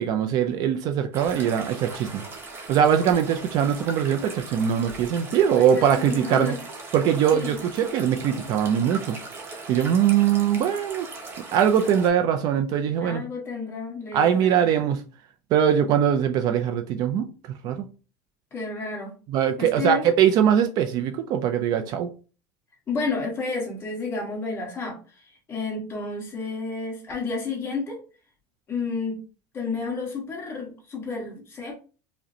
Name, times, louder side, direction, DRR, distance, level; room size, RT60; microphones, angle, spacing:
voice 1, 0.0-2.2 2.7-6.6 6.9-9.2 9.7-11.1 11.5-13.2 14.1-15.0 15.5-17.3 17.6-17.8 19.3-22.1, right 9 dB, 45° right, 0.4 m, -22 dB
sound 1, 1.1-12.1, right 3 dB, 25° right, 0.9 m, -39 dB
voice 2, 5.6-6.6 7.3-7.6 13.0-14.7 18.5-19.1 19.6-20.0 22.9-28.0 28.7-29.2 29.5-31.8, left 4 dB, 25° left, 1.5 m, -31 dB
4.8 x 2.1 x 2.8 m
cardioid pair, 155°, 9 cm